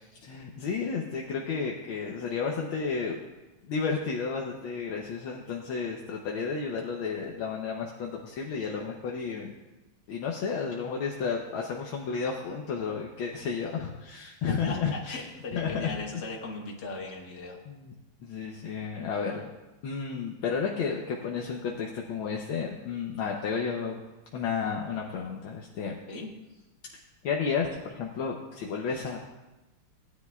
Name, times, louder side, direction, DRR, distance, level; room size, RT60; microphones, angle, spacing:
voice 1, 0.1-3.2 3.7-9.6 10.1-15.2 15.5-16.0 17.7-17.9 18.2-19.5 19.8-24.0 24.3-25.9 27.2-29.3, left 5 dB, 70° left, 0 dB, 1.6 m, -32 dB
voice 2, 14.5-17.6 26.1-26.3, left 2 dB, 50° left, 0 dB, 2.0 m, -38 dB
18.0 x 10.0 x 2.3 m, 1.1 s
omnidirectional pair, 2.4 m